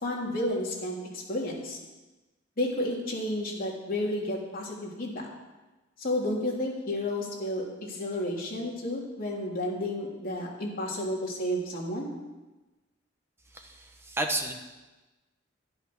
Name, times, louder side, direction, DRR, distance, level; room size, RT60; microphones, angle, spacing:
voice 1, 0.0-1.0 1.3-1.8 2.6-5.3 6.0-12.1, left 1 dB, 50° left, -3 dB, 3.4 m, -31 dB
voice 2, 13.5-14.5, right 1 dB, 15° right, 3 dB, 1.4 m, -32 dB
11.5 x 11.5 x 6.3 m, 1.1 s
head